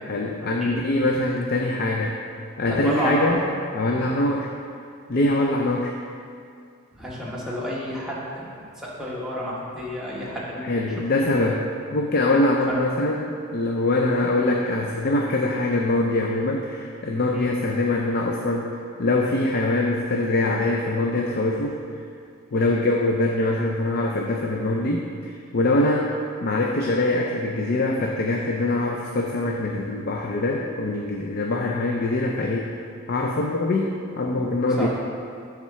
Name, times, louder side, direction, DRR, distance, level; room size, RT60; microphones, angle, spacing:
voice 1, 0.1-2.1 2.6-3.4 3.7-4.5 5.1-5.9 10.6-11.6 11.9-18.7 19.0-21.8 22.5-26.1 26.4-32.7 33.1-34.9, left 2 dB, 45° left, 0 dB, 0.4 m, -23 dB
voice 2, 2.6-3.4 5.2-5.4 6.9-8.5 8.8-11.3 12.7-12.8 17.3-17.6 22.6-22.7 34.8-34.9, equal, ahead, -7 dB, 1.1 m, -30 dB
7.3 x 3.6 x 5.6 m, 2.3 s
head